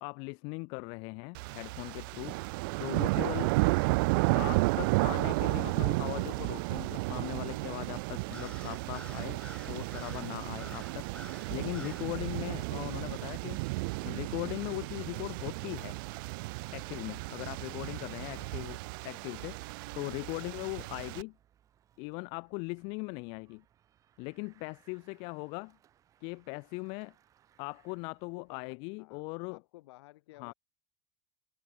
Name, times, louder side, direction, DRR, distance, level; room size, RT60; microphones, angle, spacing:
voice 1, 0.0-3.5 4.3-13.6 14.0-16.0 16.7-18.8 19.0-19.6 19.9-21.4 22.0-23.6 24.2-25.8 26.2-27.2 27.6-29.6 30.4-30.5, left 32 dB, 35° left, 0.3 m, -39 dB
sound 1, 1.3-21.2, right 26 dB, 50° right, 0.5 m, -33 dB
sound 2, 3.0-20.6, left 3 dB, 5° left, 5.9 m, -58 dB
Bicycle, 14.5-28.7, right 10 dB, 20° right, 4.0 m, -63 dB
voice 2, 28.4-29.2 29.5-30.5, left 18 dB, 65° left, 3.5 m, -55 dB
supercardioid pair, 175°, 15 cm